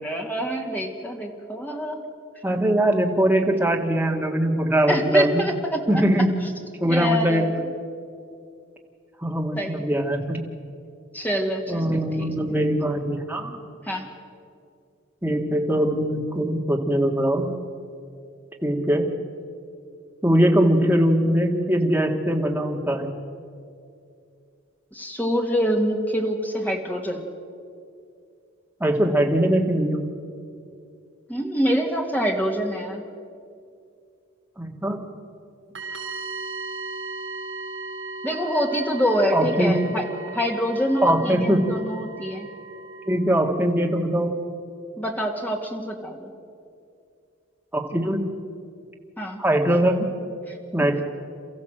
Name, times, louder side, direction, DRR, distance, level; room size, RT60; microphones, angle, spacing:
voice 1, 0.0-2.0 4.9-6.0 6.9-7.6 9.6-9.9 11.1-12.3 13.8-14.1 24.9-27.2 31.3-33.0 38.2-40.0 40.3-42.5 45.0-46.3 49.2-49.4 50.5-50.9, equal, 10° left, 2 dB, 2.0 m, -26 dB
voice 2, 2.4-5.4 5.9-6.3 6.8-7.5 9.2-10.4 11.7-13.6 15.2-17.5 18.6-19.1 20.2-23.1 28.8-30.0 34.6-35.0 39.3-39.9 41.0-41.6 43.1-44.4 47.7-48.3 49.4-50.1 50.7-51.0, right 1 dB, 10° right, 0 dB, 1.9 m, -21 dB
sound 1, 35.7-43.2, right 3 dB, 65° right, 4.0 m, -36 dB
28.5 x 14.5 x 7.8 m, 2.4 s
head